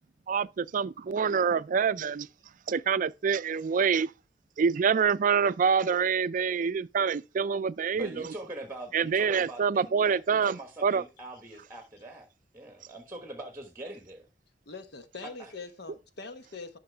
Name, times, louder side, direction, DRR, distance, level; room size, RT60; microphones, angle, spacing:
voice 1, 0.3-2.3 2.7-4.1 4.6-8.1 8.9-11.0, right 6 dB, 45° right, 0.4 m, -26 dB
voice 2, 7.9-12.3 12.5-14.3 15.2-15.5, right 1 dB, 15° right, 1.3 m, -43 dB
voice 3, 14.7-16.8, left 4 dB, 65° left, 1.1 m, -43 dB
11.5 x 5.7 x 3.4 m
head